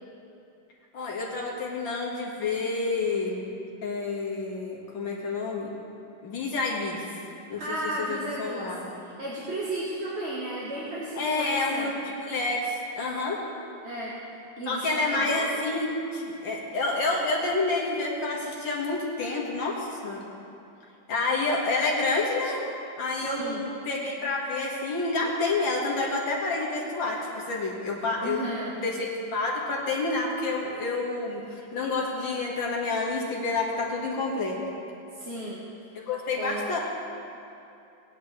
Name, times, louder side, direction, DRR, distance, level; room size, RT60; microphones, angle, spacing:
voice 1, 0.9-3.4 3.8-5.7 6.2-7.0 7.5-8.8 11.2-13.4 14.7-20.2 21.1-22.6 23.0-27.2 27.5-28.4 28.8-34.6 35.9-36.8, left 3 dB, 80° left, -3 dB, 2.4 m, -29 dB
voice 2, 7.6-8.7 9.0-11.9 13.8-14.2 14.6-15.5 23.1-23.7 28.2-28.8 35.1-35.6 36.3-36.7, right 1 dB, 35° right, -7 dB, 1.6 m, -34 dB
18.0 x 10.0 x 3.3 m, 2.7 s
omnidirectional pair, 2.1 m